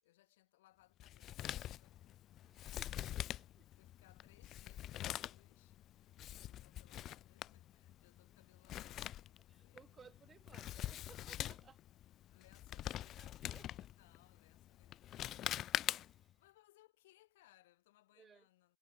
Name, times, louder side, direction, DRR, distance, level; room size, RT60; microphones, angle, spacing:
voice 1, 0.0-2.4 3.0-3.3 3.7-9.9 10.6-11.1 12.3-15.9 16.4-18.8, left 16 dB, 55° left, 3.3 m, -70 dB
Male speech man speaking, 1.0-16.3, left 13 dB, 30° left, 0.4 m, -45 dB
voice 2, 2.4-3.6 9.5-11.8 13.2-13.7 16.0-16.4 18.1-18.5, right 6 dB, 20° right, 3.6 m, -62 dB
figure-of-eight pair, 90°, 0 cm